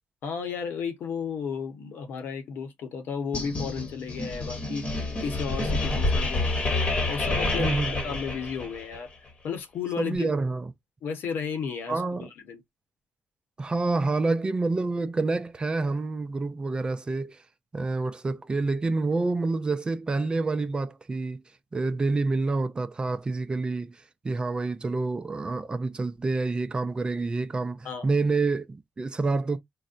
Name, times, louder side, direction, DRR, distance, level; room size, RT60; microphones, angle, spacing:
voice 1, 0.2-6.6 7.1-9.1 9.4-10.3 11.0-12.6 27.8-28.1, left 6 dB, 80° left, 1.0 m, -33 dB
sound 1, 3.3-9.0, left 2 dB, 35° left, 1.0 m, -28 dB
voice 2, 7.6-8.0 10.0-10.7 11.9-12.3 13.6-17.4 17.7-21.4 21.7-24.0 24.2-29.6, right 3 dB, 25° right, 0.5 m, -28 dB
4.0 x 2.1 x 2.4 m
cardioid pair, 110°, 4 cm